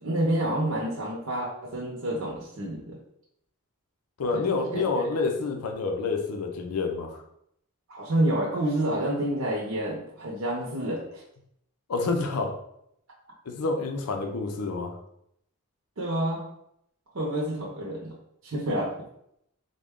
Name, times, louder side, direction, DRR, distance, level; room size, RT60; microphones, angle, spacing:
voice 1, 0.0-3.0 4.3-4.8 7.9-11.2 16.0-16.4 17.1-18.2 18.4-18.9, right 1 dB, 70° right, -4 dB, 0.7 m, -28 dB
voice 2, 4.2-7.2 11.9-12.6 13.5-14.9, left 3 dB, 90° left, 4 dB, 0.5 m, -28 dB
3.6 x 2.2 x 3.6 m, 0.75 s
head